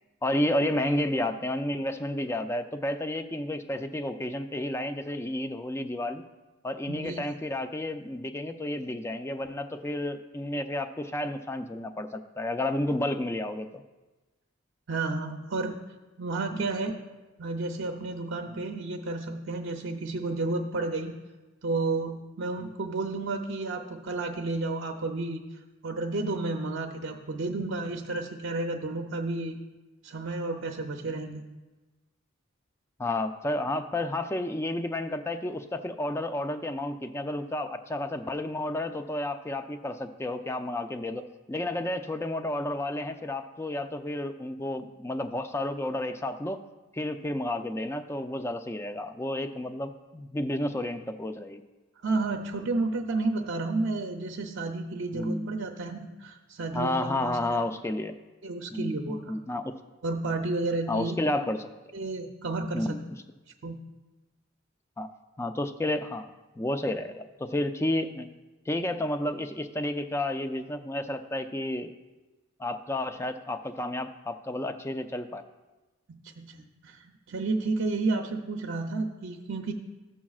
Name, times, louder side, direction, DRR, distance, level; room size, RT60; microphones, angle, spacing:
voice 1, 0.2-6.2 6.6-13.8 16.5-16.6 18.5-18.6 22.6-22.7 31.1-31.2 33.0-46.6 46.9-51.6 55.1-55.5 56.7-58.1 58.7-59.7 60.9-61.7 62.7-63.0 65.0-65.1 65.4-66.3 66.6-68.3 68.7-71.9 72.6-75.4, left 1 dB, 15° left, 8 dB, 0.4 m, -31 dB
voice 2, 6.9-7.3 14.9-15.8 16.2-17.0 17.4-21.1 21.6-25.4 25.8-29.6 30.0-31.4 52.0-57.6 58.4-59.4 60.0-61.2 61.9-63.0 63.6-63.8 76.1-77.0 77.3-79.7, right 3 dB, 60° right, 2 dB, 0.6 m, -31 dB
13.5 x 7.2 x 2.4 m, 1.2 s
head